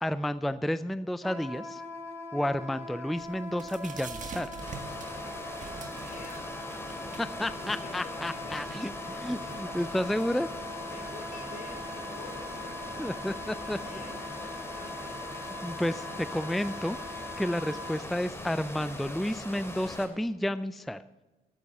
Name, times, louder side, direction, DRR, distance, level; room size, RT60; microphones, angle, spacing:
voice 1, 0.0-1.8 2.3-4.5 7.2-10.5 13.0-13.8 15.6-17.0 17.4-21.0, left 1 dB, ahead, 14 dB, 0.4 m, -31 dB
Wind instrument woodwind instrument, 1.2-18.0, left 2 dB, 15° right, 2.4 m, -42 dB
sound 1, 3.2-15.1, right 5 dB, 50° right, 1.4 m, -49 dB
sound 2, 4.6-20.1, left 1 dB, 15° left, 3.1 m, -41 dB
voice 2, 5.6-6.5 7.6-8.8 10.7-15.2, left 3 dB, 60° left, 3 dB, 4.0 m, -49 dB
12.0 x 8.3 x 6.1 m, 1.1 s
supercardioid pair, 65°, 16 cm